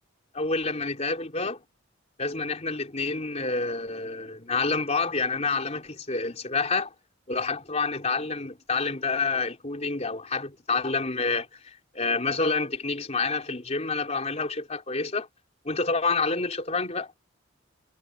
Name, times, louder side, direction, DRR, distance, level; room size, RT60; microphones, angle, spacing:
voice 1, 0.3-1.6 2.2-6.9 7.3-15.3 15.7-17.1, left 4 dB, 35° left, 3.6 m, -28 dB
head